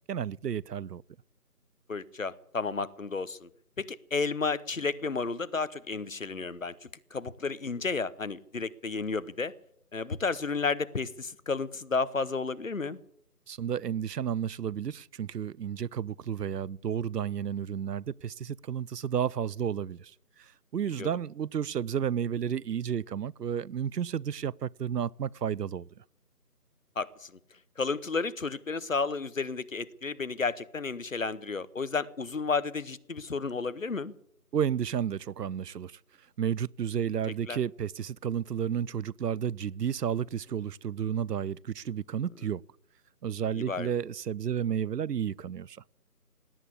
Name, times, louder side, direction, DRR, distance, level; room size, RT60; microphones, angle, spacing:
voice 1, 0.1-1.0 13.5-20.1 20.7-25.9 34.5-35.9 36.4-42.6 43.2-45.8, right 8 dB, 90° right, 0.6 m, -32 dB
voice 2, 1.9-3.5 3.8-9.5 9.9-13.0 21.0-21.1 27.0-27.3 27.8-34.1 37.5-37.6 43.6-43.9, left 4 dB, 55° left, 0.9 m, -32 dB
17.5 x 9.6 x 8.4 m
figure-of-eight pair, 175°, 47 cm